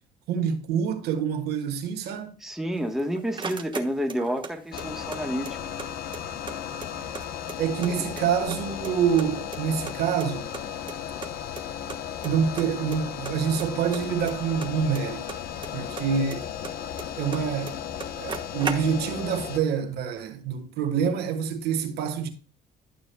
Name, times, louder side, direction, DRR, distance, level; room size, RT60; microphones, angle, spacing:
voice 1, 0.3-2.3 7.6-10.5 12.2-15.3 15.7-16.5 17.2-17.8 18.2-22.3, right 7 dB, 75° right, 1.4 m, -26 dB
voice 2, 2.4-5.5, equal, ahead, 1.2 m, -29 dB
sound 1, 2.8-4.5 4.8-5.9 6.1-6.2 6.5-7.9 8.2-8.9 9.2-10.6 10.9-11.0 11.2-11.3 11.6-11.7 11.9-12.3 12.6-13.0 13.2-15.7 16.0-17.4 17.7-17.8 18.0-19.2, right 5 dB, 30° right, 1.3 m, -36 dB
sound 2, 4.7-19.6, left 9 dB, 60° left, 0.8 m, -35 dB
12.0 x 8.0 x 2.3 m
cardioid pair, 110°, 17 cm